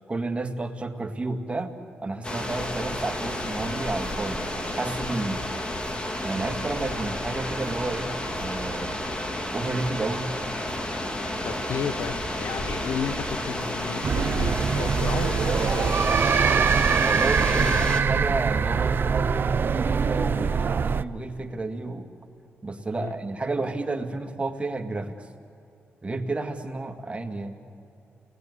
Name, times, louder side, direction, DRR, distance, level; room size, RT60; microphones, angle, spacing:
voice 1, 0.1-1.7 2.0-5.4 6.2-9.0 9.5-10.3 17.0-22.1 22.6-25.2 26.0-27.6, right 2 dB, 25° right, 5 dB, 2.0 m, -31 dB
sound 1, 2.2-18.0, left 1 dB, 25° left, 2.5 m, -31 dB
voice 2, 11.4-16.4 17.5-17.9 23.0-23.1, left 7 dB, 90° left, 9 dB, 1.2 m, -33 dB
sound 2, 14.0-21.0, right 6 dB, 50° right, 0.6 m, -23 dB
29.0 x 20.0 x 9.6 m, 2.7 s
cardioid pair, 90°, 5 cm